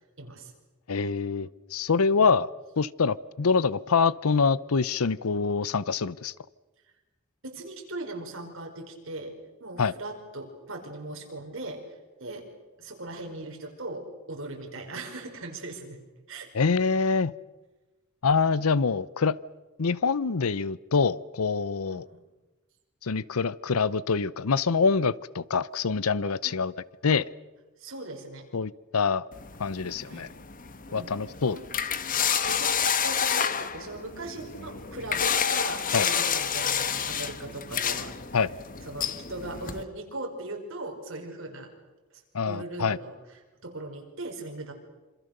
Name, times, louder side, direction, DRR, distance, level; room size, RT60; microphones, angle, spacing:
voice 1, 0.2-0.5 2.2-2.3 7.4-11.9 12.2-12.5 12.8-16.0 16.3-16.5 21.8-22.2 26.4-26.6 27.8-28.5 30.0-30.3 30.9-31.1 31.5-31.6 32.4-38.4 38.9-41.7 42.1-44.7, right 2 dB, 65° right, 2 dB, 5.3 m, -39 dB
voice 2, 0.9-2.5 2.8-6.3 9.8-9.9 16.5-17.3 18.2-19.4 19.8-22.1 23.0-26.7 27.0-27.3 28.5-29.2 29.6-30.3 30.9-31.6 35.9-36.1 38.3-38.5 42.3-43.0, left 5 dB, 85° left, 20 dB, 0.7 m, -25 dB
sound 1, 29.3-39.8, left 7 dB, 40° left, 1.2 m, -29 dB
27.0 x 26.5 x 6.8 m, 1.2 s
head